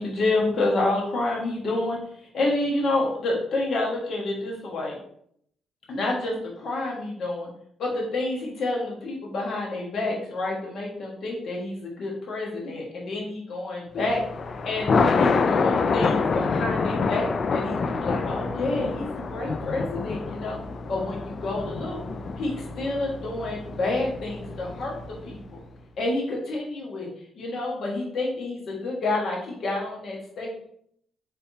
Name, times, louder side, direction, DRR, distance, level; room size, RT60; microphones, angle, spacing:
voice 1, 0.0-5.0 5.9-7.5 7.8-14.2 14.6-14.9 15.1-20.6 20.9-22.0 22.4-25.0 25.2-25.6 26.0-27.1 27.3-30.7, left 2 dB, 60° left, -2 dB, 1.4 m, -28 dB
Thunder, 14.0-25.4, left 4 dB, 45° left, 0.4 m, -27 dB
4.3 x 3.5 x 2.7 m, 0.67 s
cardioid pair, 90°, 0 cm